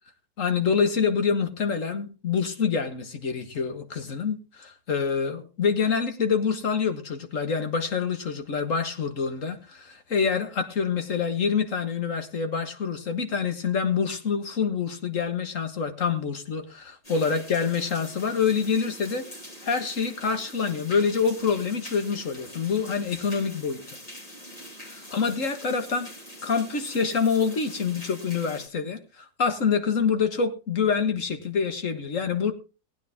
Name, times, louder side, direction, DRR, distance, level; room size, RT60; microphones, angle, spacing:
voice 1, 0.4-19.3 19.6-24.0 25.1-26.1 26.4-32.5, left 6 dB, 55° left, 8 dB, 1.8 m, -26 dB
sound 1, 17.0-28.7, equal, 25° left, 2.3 m, -44 dB
19.0 x 9.3 x 3.6 m, 0.32 s
omnidirectional pair, 1.7 m